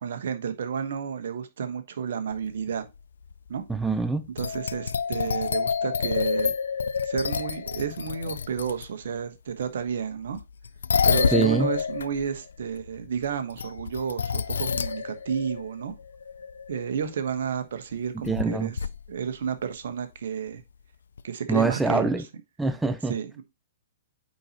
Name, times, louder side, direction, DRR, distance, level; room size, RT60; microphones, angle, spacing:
voice 1, 0.0-2.9 3.5-3.6 4.3-6.5 7.0-10.4 11.0-15.9 16.7-18.8 19.1-20.6 21.2-22.1 23.1-23.4, right 7 dB, 65° right, 1.2 m, -31 dB
sound 1, 2.3-2.4 3.3-3.5 4.4-8.9 10.3-17.1 18.2-18.4 18.8-19.1 21.2-21.3, left 6 dB, 80° left, 0.3 m, -28 dB
voice 2, 3.7-4.3 11.3-11.7 18.2-18.7 21.5-22.2 22.6-23.2, right 4 dB, 5° right, 0.5 m, -24 dB
9.0 x 4.2 x 2.9 m
hypercardioid pair, 125°, 0 cm